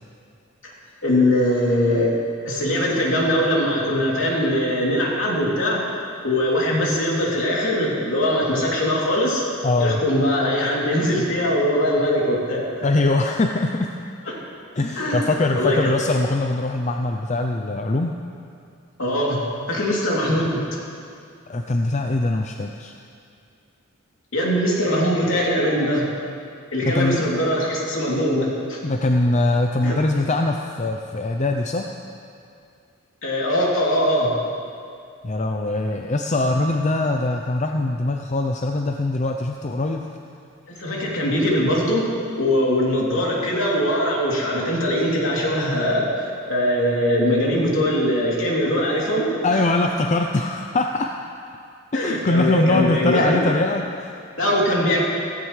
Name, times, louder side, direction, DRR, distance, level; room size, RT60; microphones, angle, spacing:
voice 1, 1.0-2.1 2.4-5.8 6.2-9.4 9.8-12.6 15.0-15.9 19.0-19.4 19.7-20.6 24.3-26.0 26.7-28.8 29.8-30.0 33.2-34.3 40.8-42.1 42.4-49.6 51.9-53.4 54.4-55.0, left 1 dB, 65° left, -4 dB, 3.0 m, -21 dB
voice 2, 9.6-10.0 12.8-13.9 14.8-18.2 21.5-22.9 26.8-27.2 28.8-31.9 35.2-40.0 49.4-51.1 51.9-53.8, left 2 dB, 35° left, 3 dB, 0.5 m, -22 dB
16.0 x 16.0 x 3.3 m, 2.4 s
head